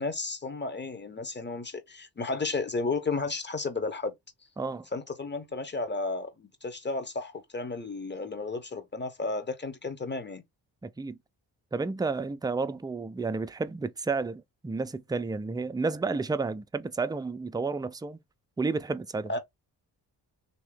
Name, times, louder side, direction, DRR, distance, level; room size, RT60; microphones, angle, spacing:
voice 1, 0.0-4.1 4.9-10.4 19.3-19.4, left 3 dB, 25° left, 1.0 m, -33 dB
voice 2, 4.6-4.9 10.8-11.2 11.7-18.2 18.6-19.3, right 4 dB, 10° right, 0.4 m, -31 dB
3.0 x 2.8 x 3.4 m
cardioid pair, 60°, 41 cm